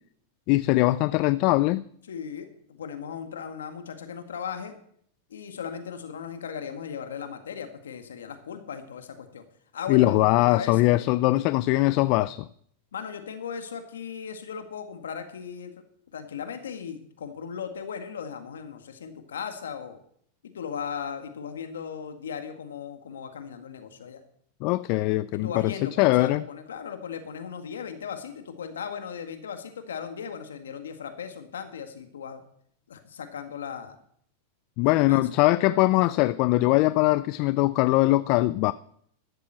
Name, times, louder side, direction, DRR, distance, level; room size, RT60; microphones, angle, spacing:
voice 1, 0.5-1.8 9.9-12.5 24.6-26.4 34.8-38.7, left 19 dB, 50° left, 0.4 m, -21 dB
voice 2, 2.1-4.7 5.3-9.4 9.7-10.8 12.9-15.7 16.1-20.0 20.5-24.2 25.3-32.4 32.9-34.0 34.8-35.2 35.9-36.1, left 7 dB, 85° left, 1.8 m, -37 dB
12.5 x 7.6 x 7.5 m
hypercardioid pair, 110°, 0 cm